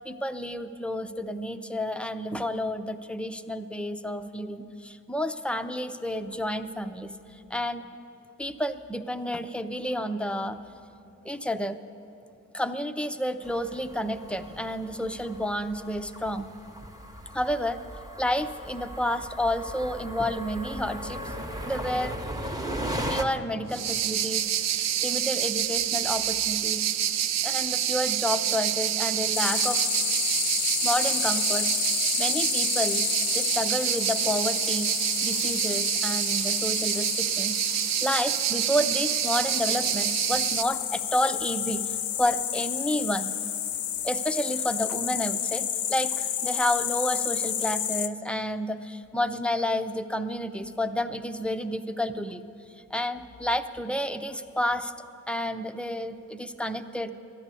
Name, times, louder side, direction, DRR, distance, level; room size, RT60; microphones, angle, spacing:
voice 1, 0.0-7.2 7.5-7.8 8.4-10.6 11.2-11.8 12.5-16.5 17.3-17.8 18.2-21.3 21.6-22.1 23.1-26.9 27.4-29.9 30.8-33.1 33.3-34.9 35.2-43.3 44.0-52.4 52.9-54.9 55.3-57.1, left 1 dB, 5° left, 9 dB, 0.6 m, -30 dB
sound 1, 13.4-23.2, equal, 10° right, 1.0 m, -37 dB
sound 2, 23.7-40.6, right 10 dB, 60° right, 0.5 m, -27 dB
sound 3, 29.3-48.1, left 9 dB, 75° left, 0.7 m, -31 dB
12.5 x 10.5 x 8.2 m, 2.7 s
cardioid pair, 90°, 30 cm